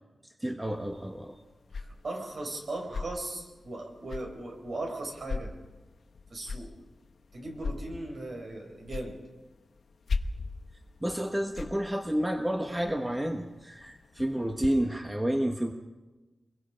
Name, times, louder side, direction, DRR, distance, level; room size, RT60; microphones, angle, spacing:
voice 1, 0.4-1.4 11.0-15.7, right 1 dB, 10° right, 3 dB, 1.1 m, -30 dB
sound 1, 0.6-14.7, left 4 dB, 70° left, 1.0 m, -41 dB
voice 2, 1.8-5.5 6.3-6.7 7.3-9.2, right 2 dB, 55° right, 2 dB, 5.2 m, -38 dB
27.5 x 22.0 x 5.1 m, 1.1 s
wide cardioid pair, 155°, 0 cm